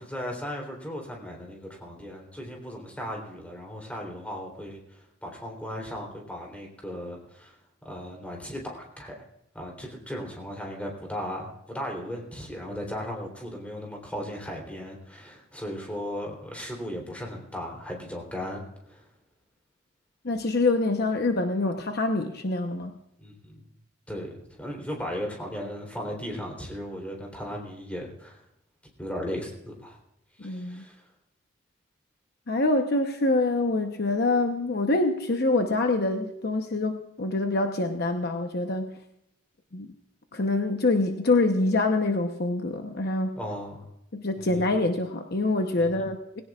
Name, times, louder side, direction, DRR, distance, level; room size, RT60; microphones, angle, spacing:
voice 1, 0.0-7.6 7.8-9.2 9.5-19.0 23.2-23.7 24.1-24.3 24.6-28.4 29.0-30.0 30.4-31.0 43.4-43.9 44.4-44.7 45.8-46.1, equal, 5° left, 0 dB, 3.3 m, -36 dB
voice 2, 20.2-22.9 30.4-30.8 32.5-38.9 39.7-39.9 40.3-43.4 44.1-46.4, left 2 dB, 50° left, 5 dB, 0.9 m, -25 dB
20.0 x 17.0 x 2.4 m, 0.80 s
head